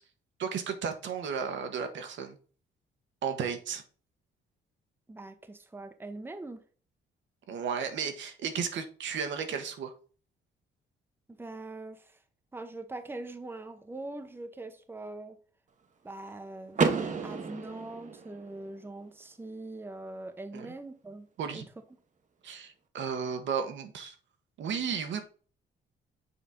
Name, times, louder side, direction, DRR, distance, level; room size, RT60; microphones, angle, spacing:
voice 1, 0.4-2.4 3.2-3.8 7.5-9.9 20.5-20.7 21.4-21.6 22.4-24.1 24.6-25.2, right 6 dB, 70° right, 1.2 m, -34 dB
voice 2, 5.1-6.6 11.4-12.2 12.5-15.4 16.0-16.8 17.2-21.6, right 2 dB, 10° right, 0.8 m, -42 dB
Car / Door, 16.7-18.7, right 5 dB, 40° right, 1.0 m, -30 dB
7.0 x 4.1 x 3.7 m
cardioid pair, 90°, 20 cm